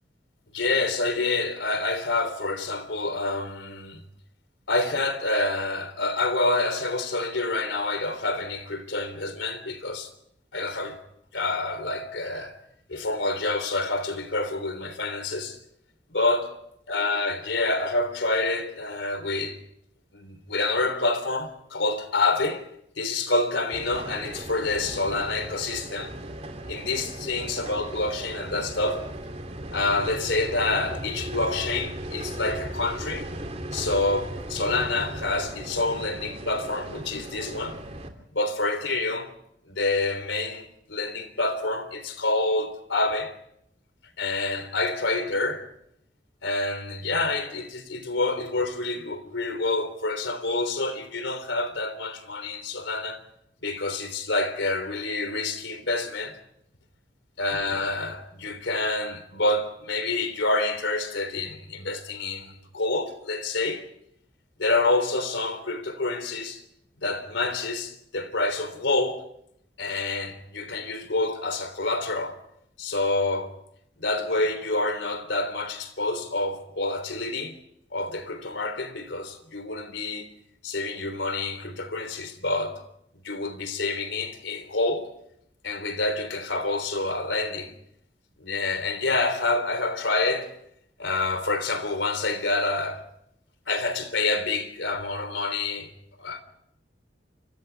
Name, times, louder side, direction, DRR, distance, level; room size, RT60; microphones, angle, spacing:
voice 1, 0.5-4.0 4.7-10.1 10.5-11.0 11.3-12.6 12.9-15.6 16.1-16.5 16.9-19.6 20.1-22.6 23.0-26.1 26.7-29.1 29.7-33.3 33.7-37.8 38.3-39.3 39.7-43.3 44.2-45.6 46.4-53.2 53.6-56.4 57.4-63.8 64.6-66.6 67.0-69.2 69.8-72.4 72.8-73.5 74.0-77.6 77.9-80.3 80.6-82.8 83.2-85.1 85.6-87.7 88.4-90.5 91.0-93.0 93.7-95.9 96.2-96.4, left 2 dB, 90° left, 3.5 m, -27 dB
sound 1, 23.7-38.1, right 1 dB, 35° right, 3.0 m, -37 dB
29.5 x 26.0 x 3.5 m
head